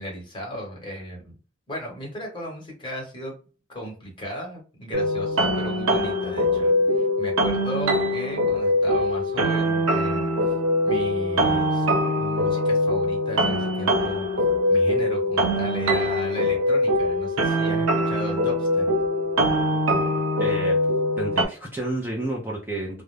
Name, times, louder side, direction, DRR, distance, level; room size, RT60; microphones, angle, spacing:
voice 1, 0.0-1.3 1.7-3.3 3.7-10.3 10.8-11.9 12.2-14.3 14.7-18.9, equal, 25° left, 0 dB, 1.1 m, -35 dB
sound 1, 4.9-21.4, left 1 dB, 80° right, 0.5 m, -23 dB
voice 2, 20.4-23.0, right 2 dB, 10° right, -2 dB, 0.5 m, -31 dB
2.4 x 2.0 x 3.1 m, 0.37 s
head